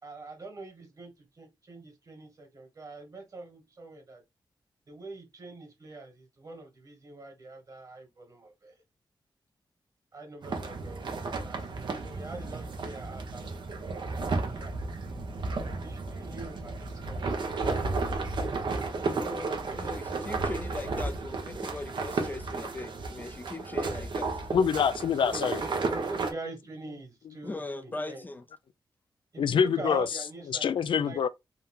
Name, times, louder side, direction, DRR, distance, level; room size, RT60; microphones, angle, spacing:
voice 1, 0.0-4.2 4.9-8.8 10.1-13.5 14.0-14.7 15.8-19.2 19.6-20.1 25.2-28.3 29.3-30.7 31.0-31.2, right 3 dB, 45° right, 1.8 m, -44 dB
sound 1, 10.4-26.3, right 3 dB, 65° right, 1.0 m, -33 dB
voice 2, 19.1-24.4 27.4-28.4, left 2 dB, 20° left, 0.4 m, -39 dB
voice 3, 24.5-25.6 29.4-30.1 30.5-31.3, left 7 dB, 80° left, 0.4 m, -25 dB
3.6 x 2.8 x 3.6 m
wide cardioid pair, 120°, 8 cm